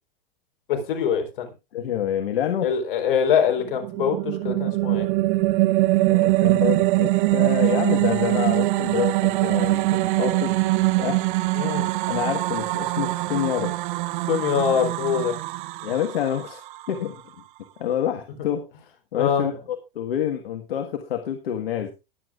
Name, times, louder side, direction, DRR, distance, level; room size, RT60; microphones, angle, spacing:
voice 1, 0.7-1.5 2.6-5.1 11.6-11.9 14.3-15.3 19.1-19.5, left 7 dB, 70° left, 5 dB, 4.1 m, -23 dB
voice 2, 1.7-2.7 6.1-10.6 11.0-11.2 12.1-14.1 15.8-16.6 16.9-17.2 17.8-18.7 19.1-21.9, left 10 dB, 85° left, 6 dB, 1.6 m, -27 dB
sound 1, 3.6-17.0, right 19 dB, 55° right, 1.0 m, -23 dB
20.5 x 8.2 x 2.4 m, 0.27 s
hypercardioid pair, 130°, 29 cm